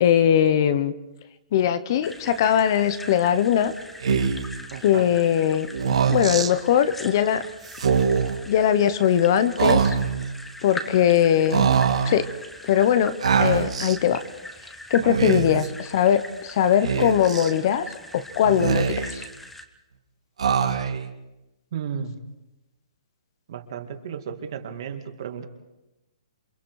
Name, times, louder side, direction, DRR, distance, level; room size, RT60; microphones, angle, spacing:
voice 1, 0.0-0.9 1.5-3.7 4.8-5.7 6.1-7.4 8.5-10.0 10.6-11.7 12.0-12.3 12.6-14.2 14.9-17.9 18.1-19.2, left 9 dB, 35° left, 13 dB, 0.9 m, -20 dB
sound 1, 2.0-19.7, left 1 dB, 5° left, 0.9 m, -41 dB
Speech, 4.0-4.5 5.7-6.5 7.7-8.4 9.6-10.3 11.5-12.2 13.2-14.0 15.0-15.7 16.8-17.5 18.4-19.2 20.4-21.1, right 6 dB, 75° right, 2.0 m, -23 dB
voice 2, 4.7-5.1 15.0-15.4 21.7-22.2 23.5-25.4, right 7 dB, 45° right, 5 dB, 2.2 m, -34 dB
28.0 x 25.0 x 4.8 m, 0.98 s
hypercardioid pair, 170°, 3 cm